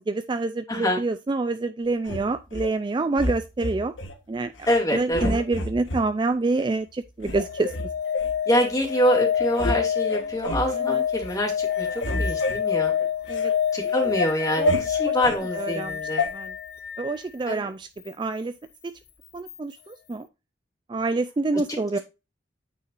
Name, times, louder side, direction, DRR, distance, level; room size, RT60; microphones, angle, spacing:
voice 1, 0.0-3.9 4.3-4.5 4.9-7.7 10.7-11.0 13.3-13.5 13.8-14.1 14.6-14.8 15.1-15.2 15.5-16.0 16.3-16.5 17.0-18.5 18.8-18.9 19.3-20.3 20.9-22.0, right 3 dB, 25° right, 10 dB, 0.3 m, -27 dB
voice 2, 0.7-1.0 4.7-5.3 8.5-12.9 13.7-16.2 17.5-17.7, equal, 20° left, -1 dB, 2.4 m, -25 dB
sound 1, 2.0-2.7 3.2-4.1 4.6-4.8 5.1-6.1 6.6-6.7 7.2-8.3 8.9-9.0 9.3-9.8 10.1-10.7 11.2-11.4 11.7-13.5 13.9-15.4 16.2-16.3, left 1 dB, 80° left, 1.4 m, -29 dB
sound 2, 7.3-17.1 19.5-19.6, left 9 dB, 50° left, 0.5 m, -28 dB
8.9 x 5.5 x 2.5 m, 0.27 s
head